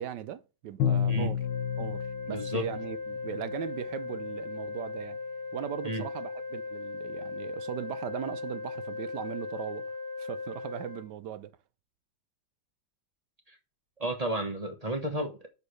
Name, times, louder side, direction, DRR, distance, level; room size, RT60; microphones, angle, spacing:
voice 1, 0.0-1.4 1.8-5.2 5.5-9.8 10.2-11.5, right 10 dB, 70° right, 1.2 m, -38 dB
Bowed string instrument, 0.8-3.6, left 8 dB, 85° left, 1.7 m, -31 dB
sound 1, 1.4-11.0, left 4 dB, 35° left, 1.1 m, -38 dB
voice 2, 2.3-2.6 5.8-6.0 13.5-13.6 14.0-15.5, right 1 dB, 25° right, 1.0 m, -32 dB
6.6 x 5.2 x 6.3 m
omnidirectional pair, 2.2 m